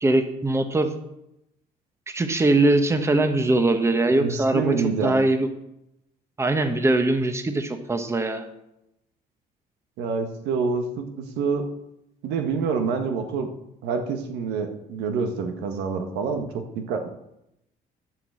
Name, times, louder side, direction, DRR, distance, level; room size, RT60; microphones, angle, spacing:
voice 1, 0.0-0.9 2.1-4.7 5.0-5.5 6.4-8.4, right 2 dB, 15° right, 7 dB, 1.1 m, -21 dB
voice 2, 4.2-5.1 10.0-11.7 12.2-13.5 13.8-17.1, right 5 dB, 85° right, 5 dB, 1.6 m, -27 dB
11.0 x 6.0 x 7.6 m, 0.84 s
cardioid pair, 110°, 17 cm